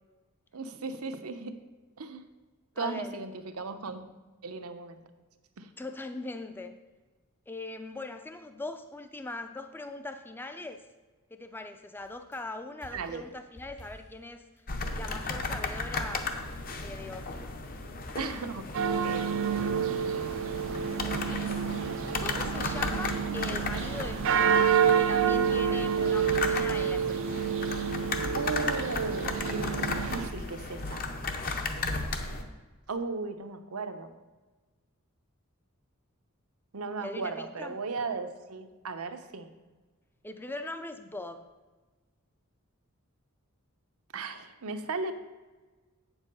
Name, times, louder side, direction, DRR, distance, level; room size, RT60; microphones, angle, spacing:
voice 1, 0.5-1.6 2.0-2.2 2.8-4.0 4.4-5.0 5.6-5.7 12.9-13.3 18.2-18.7 19.0-19.3 28.4-31.1 32.9-34.1 36.7-39.5 44.1-45.1, right 4 dB, 80° right, 8 dB, 0.8 m, -36 dB
voice 2, 2.8-3.2 5.8-6.8 7.5-10.8 11.3-14.4 15.0-16.3 16.7-17.5 21.0-21.9 22.2-24.7 24.9-27.5 37.0-37.8 40.2-41.5, left 2 dB, 10° left, 8 dB, 0.4 m, -41 dB
sound 1, 12.0-12.4 12.8-14.3 14.6-14.7 15.1-16.9 17.3-18.8 19.6-21.4 21.8-23.3 24.1-24.6, equal, 85° left, 2.2 m, -51 dB
sound 2, 14.7-32.4, left 3 dB, 40° left, 0.8 m, -35 dB
sound 3, 18.7-30.3, right 7 dB, 60° right, 0.4 m, -28 dB
8.2 x 7.2 x 5.4 m, 1.3 s
head